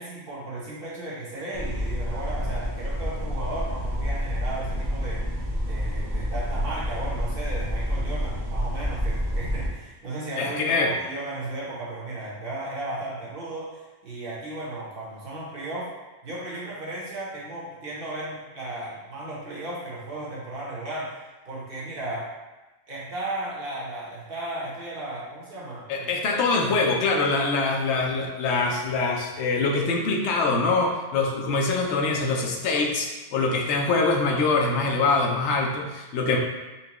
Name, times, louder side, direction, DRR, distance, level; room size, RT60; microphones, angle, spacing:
voice 1, 0.0-15.9 16.2-22.3 22.9-26.5 27.5-28.0, right 2 dB, 55° right, -6 dB, 1.1 m, -35 dB
sound 1, 1.5-9.7, equal, 25° right, 0.8 m, -28 dB
voice 2, 10.4-10.9 25.9-36.4, left 3 dB, 85° left, 1 dB, 0.9 m, -24 dB
4.3 x 2.2 x 2.9 m, 1.1 s
omnidirectional pair, 1.1 m